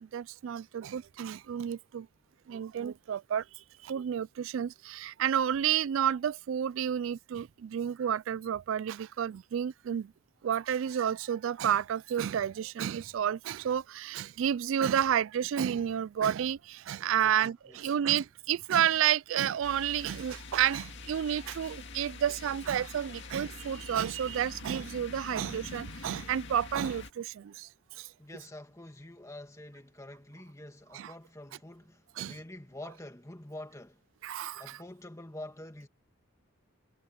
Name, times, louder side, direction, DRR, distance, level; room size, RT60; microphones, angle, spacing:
voice 1, 0.1-2.0 2.5-3.4 3.9-10.1 10.4-27.3 30.9-31.1 32.2-32.3 34.2-34.8, right 9 dB, 60° right, 0.3 m, -30 dB
voice 2, 17.2-18.0 28.2-34.0 34.6-35.9, left 1 dB, 15° left, 2.1 m, -47 dB
sound 1, 19.6-27.1, left 3 dB, 55° left, 2.1 m, -45 dB
head